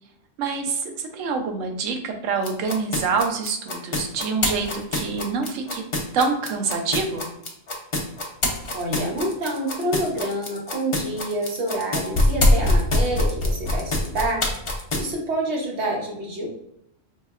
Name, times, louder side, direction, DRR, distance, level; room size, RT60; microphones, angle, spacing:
voice 1, 0.4-0.8 1.1-5.8 6.1-7.3, right 4 dB, 80° right, 5 dB, 1.0 m, -26 dB
sound 1, 2.4-15.1, left 2 dB, 50° left, 0.3 m, -23 dB
voice 2, 8.7-14.4 15.0-16.5, right 1 dB, 60° right, -2 dB, 1.2 m, -27 dB
4.0 x 2.7 x 2.3 m, 0.74 s
omnidirectional pair, 1.3 m